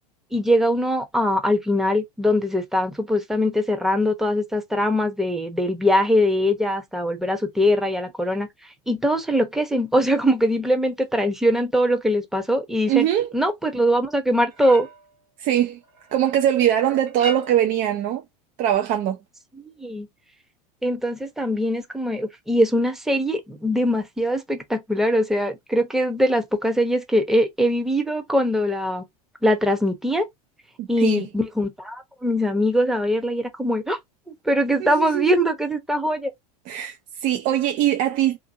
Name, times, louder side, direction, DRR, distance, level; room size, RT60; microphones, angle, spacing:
voice 1, 0.3-8.5 8.9-13.1 13.3-14.9 19.6-20.1 20.8-29.0 29.4-30.2 30.9-34.0 34.3-36.3, equal, ahead, 0.8 m, -22 dB
voice 2, 12.9-13.3 15.4-15.8 16.1-18.2 18.6-19.2 30.8-31.2 34.8-35.3 36.7-38.4, right 11 dB, 45° right, 0.5 m, -22 dB
sound 1, 14.4-15.2 15.6-16.4 17.1-17.8 18.7-18.8, right 3 dB, 70° right, 1.1 m, -37 dB
2.6 x 2.6 x 2.5 m
hypercardioid pair, 85°, 20 cm